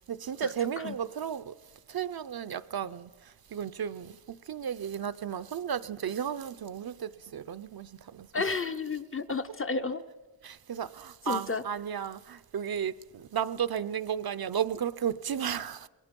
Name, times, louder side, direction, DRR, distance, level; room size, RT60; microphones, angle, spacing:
voice 1, 0.1-1.5 1.9-8.6 10.4-15.9, right 8 dB, 55° right, 0.6 m, -34 dB
voice 2, 8.3-10.0 11.3-11.6, left 4 dB, 30° left, 0.6 m, -31 dB
27.0 x 21.5 x 5.2 m
wide cardioid pair, 170°, 44 cm